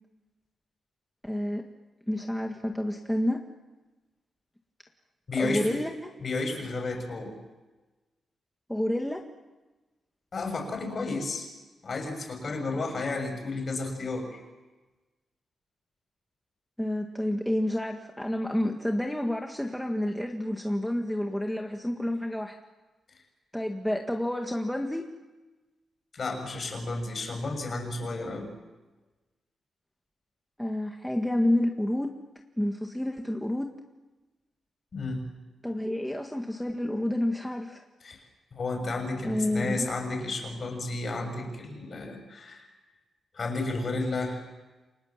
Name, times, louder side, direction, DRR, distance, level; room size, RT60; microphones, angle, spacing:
voice 1, 1.2-1.6 2.1-3.4 5.4-5.9 8.7-9.2 16.8-22.6 23.5-25.1 30.6-32.1 32.6-33.7 35.6-37.8 39.2-39.8, left 1 dB, 5° left, 2 dB, 1.8 m, -29 dB
voice 2, 5.3-5.8 6.2-7.3 10.3-11.5 11.8-14.4 26.1-28.5 34.9-35.3 38.0-42.7 43.3-44.4, left 3 dB, 40° left, 5 dB, 6.9 m, -32 dB
29.5 x 26.0 x 7.4 m, 1.2 s
wide cardioid pair, 145°, 0 cm